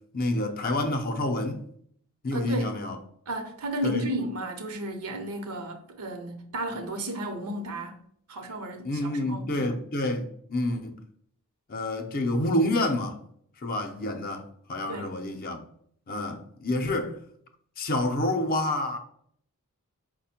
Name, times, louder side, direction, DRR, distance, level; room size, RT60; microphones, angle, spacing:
voice 1, 0.1-1.7 2.2-3.0 3.8-4.1 8.8-11.0 11.7-13.2 13.6-15.7 16.1-17.2 17.8-19.0, left 1 dB, 40° left, 0.6 m, -28 dB
voice 2, 2.3-2.8 3.3-8.0 8.3-9.7 14.9-15.1, right 1 dB, 75° right, 0.8 m, -33 dB
4.9 x 2.1 x 4.2 m
head